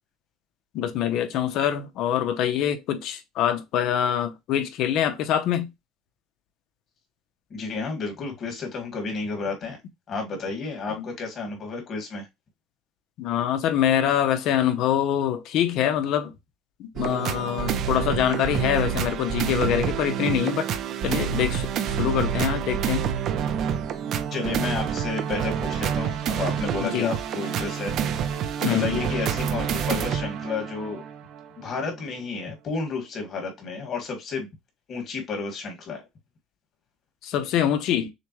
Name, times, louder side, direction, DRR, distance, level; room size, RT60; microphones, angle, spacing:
voice 1, 0.7-5.7 11.0-11.1 13.2-16.3 16.8-20.7 21.0-21.7 22.0-23.0 26.8-27.1 28.6-29.1 37.2-38.1, left 10 dB, 60° left, 0.8 m, -24 dB
voice 2, 7.5-9.8 10.1-12.3 24.3-28.2 28.6-31.0 31.6-34.5 34.9-36.0, left 4 dB, 40° left, 2.0 m, -31 dB
sound 1, 17.0-31.5 32.0-32.1, right 8 dB, 50° right, 0.6 m, -28 dB
6.6 x 2.3 x 3.1 m
cardioid pair, 135°, 0 cm